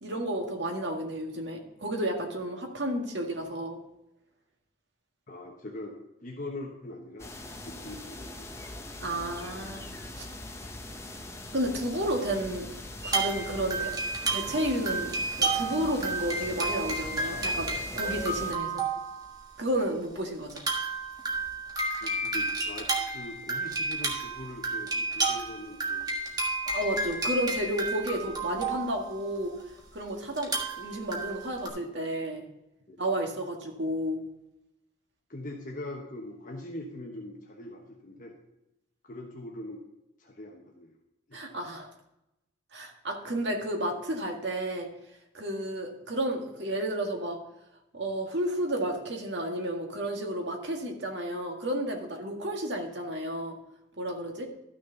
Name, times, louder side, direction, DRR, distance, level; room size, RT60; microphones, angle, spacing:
voice 1, 0.0-3.8 9.0-9.9 10.2-10.3 11.5-12.7 13.0-13.9 14.3-18.8 19.6-20.6 26.7-29.5 29.9-32.5 33.0-34.2 41.3-41.9 42.7-44.9 45.3-47.4 47.9-53.6 54.0-54.5, right 1 dB, 65° right, 2 dB, 1.8 m, -32 dB
voice 2, 5.3-7.3 7.6-8.6 22.0-26.2 32.9-33.0 35.3-38.4 39.0-39.8 40.2-41.0 41.3-41.4, left 1 dB, 45° left, -1 dB, 1.2 m, -42 dB
sound 1, 7.2-18.5, left 1 dB, 15° left, 0.8 m, -41 dB
sound 2, 13.0-19.4 19.9-20.0 20.5-29.6 30.4-31.7, right 3 dB, 20° right, 1.5 m, -31 dB
13.0 x 6.3 x 3.9 m, 0.89 s
head